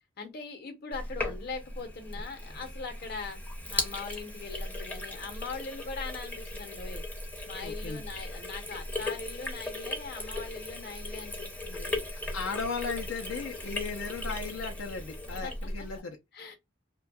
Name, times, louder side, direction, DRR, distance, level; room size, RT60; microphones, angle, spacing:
voice 1, 0.2-3.4 3.7-7.0 7.4-12.0 15.3-15.9 16.3-16.6, left 4 dB, 50° left, 0.8 m, -41 dB
Sink (filling or washing), 0.9-16.0, left 1 dB, 10° left, 0.5 m, -37 dB
voice 2, 7.6-8.0 11.1-11.3 12.2-16.5, left 5 dB, 80° left, 0.5 m, -37 dB
2.6 x 2.2 x 2.2 m
head